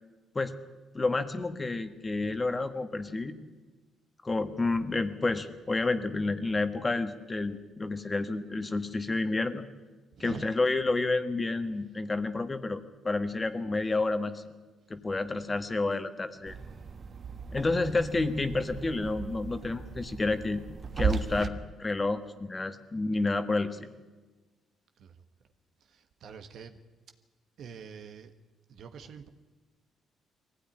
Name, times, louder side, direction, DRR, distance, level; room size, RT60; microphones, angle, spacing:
voice 1, 0.9-3.4 4.2-9.6 10.2-14.4 14.9-16.6 17.5-20.6 21.0-23.8, left 3 dB, 25° left, 9 dB, 1.7 m, -30 dB
voice 2, 10.1-10.5 16.5-16.7 18.4-18.5 25.0-25.2 25.8-26.8 27.6-28.3 28.7-29.3, right 7 dB, 70° right, 7 dB, 1.4 m, -46 dB
sound 1, 16.5-21.5, right 6 dB, 45° right, 1.3 m, -36 dB
21.5 x 16.0 x 10.0 m, 1.3 s
cardioid pair, 90°, 0 cm